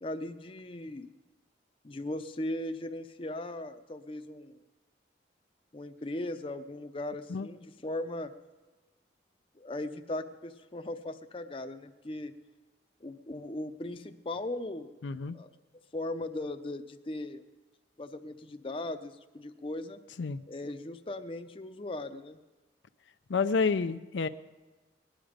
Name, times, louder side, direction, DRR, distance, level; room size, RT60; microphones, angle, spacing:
voice 1, 0.0-1.1 1.8-4.6 5.7-8.3 9.6-12.3 13.0-14.9 15.3-15.5 15.9-17.4 18.0-20.0 20.5-22.4, left 1 dB, 30° left, 7 dB, 0.6 m, -38 dB
voice 2, 15.0-15.4 20.2-20.4 23.3-24.3, left 4 dB, 80° left, 10 dB, 0.5 m, -29 dB
19.5 x 10.5 x 5.1 m, 1.2 s
head